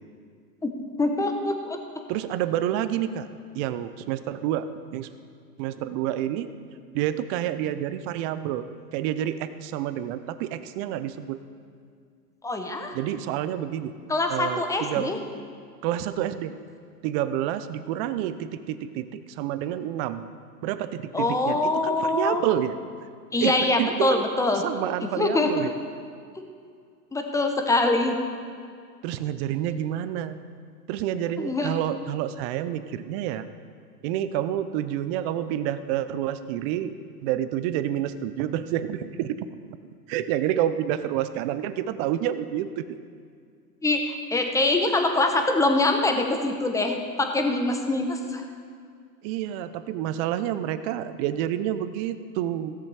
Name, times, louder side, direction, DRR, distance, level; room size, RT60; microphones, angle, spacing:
voice 1, 0.6-1.8 12.4-12.9 14.1-15.2 21.1-22.4 23.3-24.6 25.2-25.7 27.1-28.2 31.3-31.7 43.8-48.5, left 2 dB, 5° left, 4 dB, 0.9 m, -24 dB
voice 2, 2.1-3.3 3.5-5.1 5.6-6.5 6.9-8.7 8.9-11.4 12.9-13.9 14.3-15.1 15.8-16.5 17.0-20.3 20.6-22.8 23.4-24.2 24.5-25.7 29.0-30.4 30.9-33.5 34.0-36.9 37.2-39.6 40.1-43.0 49.2-52.8, right 11 dB, 40° right, 12 dB, 0.6 m, -28 dB
16.0 x 7.3 x 4.8 m, 2.2 s
hypercardioid pair, 115°, 49 cm